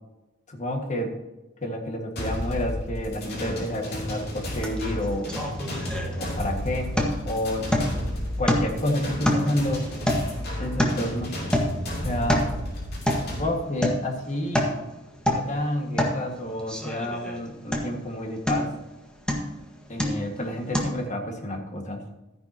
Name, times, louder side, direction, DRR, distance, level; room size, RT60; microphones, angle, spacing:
voice 1, 0.5-1.2 1.6-5.3 6.2-6.9 7.3-7.7 8.4-9.9 10.6-11.3 12.0-12.5 13.4-14.7 15.3-18.7 19.9-22.0, left 1 dB, 35° left, 2 dB, 1.8 m, -29 dB
sound 1, 2.2-13.5, left 1 dB, 55° left, 3.1 m, -32 dB
sound 2, 4.6-4.8 5.0-6.5 7.0-7.3 7.7-8.1 8.5-8.9 9.2-11.1 11.5-11.8 12.1-12.6 13.1-13.3 13.8-14.1 14.4-14.8 15.2-15.5 16.0-16.2 16.7-17.4 17.7-18.0 18.5-18.8 19.3-19.6 20.0-20.3 20.7-20.8, left 1 dB, 5° left, 1.6 m, -26 dB
13.5 x 10.5 x 2.9 m, 1.1 s
head